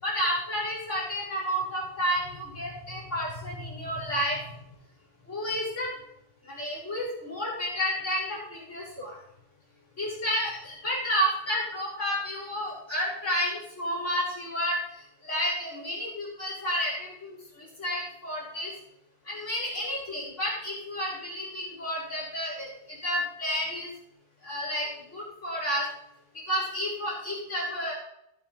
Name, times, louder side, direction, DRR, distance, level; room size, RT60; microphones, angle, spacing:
voice 1, 0.0-4.5 5.3-5.9 6.4-9.1 10.0-14.8 15.2-18.7 19.2-23.9 24.4-25.9 26.5-27.9, equal, 85° left, -10 dB, 6.7 m, -31 dB
20.5 x 7.4 x 5.9 m, 0.79 s
omnidirectional pair, 1.2 m